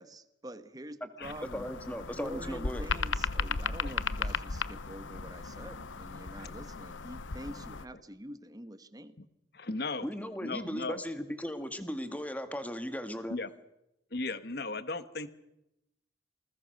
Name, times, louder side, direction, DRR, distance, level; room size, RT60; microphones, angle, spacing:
voice 1, 0.0-1.7 2.1-9.2, right 1 dB, 20° right, 12 dB, 1.2 m, -46 dB
sound 1, 1.2-7.9, left 4 dB, 90° left, 0.9 m, -36 dB
voice 2, 1.4-2.9 10.0-13.4, equal, 10° left, 8 dB, 1.7 m, -37 dB
voice 3, 9.5-10.1 10.4-11.0 13.3-13.5 14.1-15.3, left 3 dB, 55° left, 13 dB, 1.4 m, -36 dB
28.0 x 20.5 x 6.5 m, 0.86 s
head